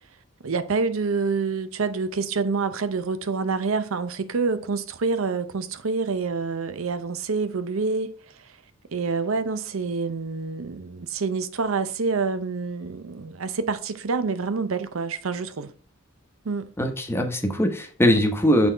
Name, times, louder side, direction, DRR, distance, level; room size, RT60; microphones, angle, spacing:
voice 1, 0.4-8.2 8.9-15.7 16.4-16.7, right 4 dB, 75° right, 0.6 m, -27 dB
voice 2, 16.8-18.7, equal, 10° left, 0.9 m, -21 dB
6.0 x 3.9 x 4.5 m
head